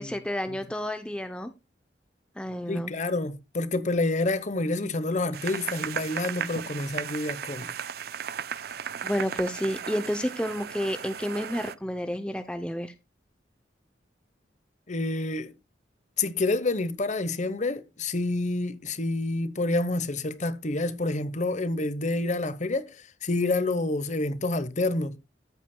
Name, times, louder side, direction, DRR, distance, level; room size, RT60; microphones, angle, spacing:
voice 1, 0.0-1.5 2.4-2.9 9.0-12.9, equal, 5° left, 0.5 m, -30 dB
voice 2, 2.7-7.7 14.9-15.5 16.2-25.2, left 2 dB, 40° left, 1.0 m, -28 dB
sound 1, 5.3-11.7, right 8 dB, 55° right, 0.5 m, -36 dB
14.0 x 8.2 x 2.2 m
head